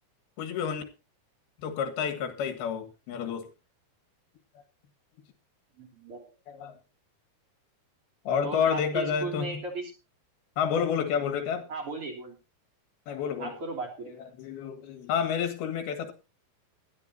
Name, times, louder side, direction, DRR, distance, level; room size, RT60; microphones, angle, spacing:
voice 1, 0.4-0.8 1.6-3.5 6.5-6.7 8.3-9.6 10.6-11.7 13.1-13.5 14.4-16.1, left 7 dB, 90° left, 3.6 m, -29 dB
voice 2, 5.8-6.2 8.4-9.9 11.7-12.4 13.4-14.1, right 3 dB, 40° right, 3.9 m, -36 dB
19.5 x 12.0 x 2.8 m
omnidirectional pair, 4.4 m